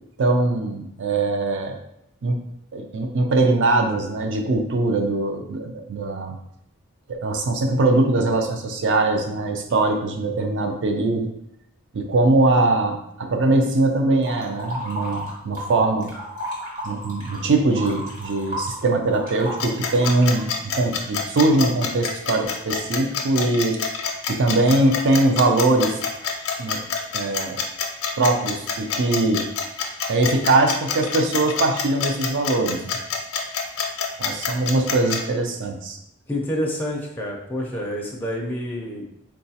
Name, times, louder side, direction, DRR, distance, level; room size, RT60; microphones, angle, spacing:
voice 1, 0.2-1.8 2.2-2.4 2.7-6.4 7.1-11.3 11.9-16.1 16.8-23.8 24.3-26.0 26.6-26.8 27.1-27.6 28.2-29.5 30.1-33.0 34.2-36.0, right 2 dB, 60° right, 5 dB, 0.4 m, -21 dB
sound 1, 14.2-15.7 16.0-20.4, equal, 40° right, 1.3 m, -33 dB
sound 2, 19.6-35.2, left 6 dB, 70° left, 0.5 m, -26 dB
voice 2, 36.3-39.1, left 1 dB, 10° left, -2 dB, 0.4 m, -28 dB
3.8 x 2.3 x 2.7 m, 0.78 s
head